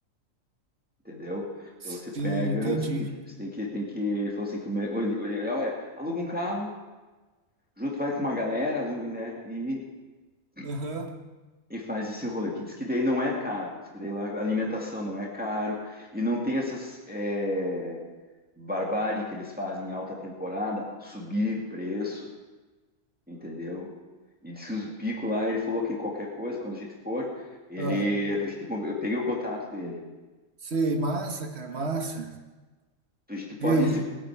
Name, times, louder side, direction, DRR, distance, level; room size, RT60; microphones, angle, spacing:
voice 1, 1.1-3.1 3.4-6.7 7.8-9.8 10.6-10.7 11.7-18.0 18.6-22.3 23.3-23.9 24.4-30.0 33.3-34.0, left 1 dB, 5° right, -2 dB, 2.0 m, -31 dB
voice 2, 1.9-3.1 10.6-11.1 27.8-28.0 30.6-32.4 33.6-34.0, right 2 dB, 55° right, 4 dB, 1.7 m, -29 dB
20.5 x 9.3 x 4.7 m, 1.2 s
omnidirectional pair, 1.4 m